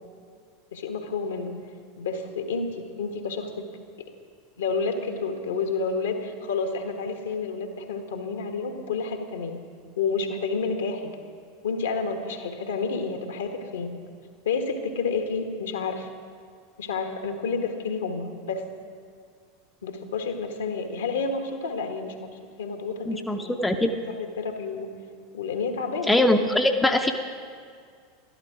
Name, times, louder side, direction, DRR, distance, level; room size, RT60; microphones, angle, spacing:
voice 1, 0.7-1.5 2.0-3.7 4.6-9.6 10.0-11.1 11.6-13.9 14.4-16.1 16.8-18.6 19.8-23.9 24.4-24.9 25.3-26.2, left 4 dB, 70° left, 5 dB, 1.3 m, -30 dB
voice 2, 23.1-23.9 26.1-27.1, left 1 dB, 5° left, 5 dB, 0.7 m, -22 dB
12.5 x 12.0 x 4.9 m, 2.1 s
figure-of-eight pair, 85°, 0 cm